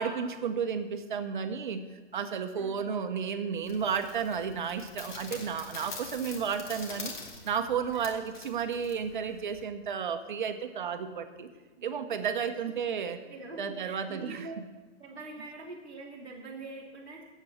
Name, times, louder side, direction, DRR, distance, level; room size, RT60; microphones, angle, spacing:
voice 1, 0.0-1.8 2.1-7.1 7.4-11.5 11.8-13.2 13.6-14.5, right 7 dB, 45° right, 8 dB, 0.8 m, -32 dB
sound 1, 3.7-9.6, left 3 dB, 45° left, 1.8 m, -45 dB
voice 2, 11.8-12.1 12.7-12.8 13.2-14.5 15.0-17.2, right 3 dB, 10° left, -8 dB, 0.5 m, -44 dB
7.7 x 7.6 x 8.4 m, 1.3 s
hypercardioid pair, 180°, 35 cm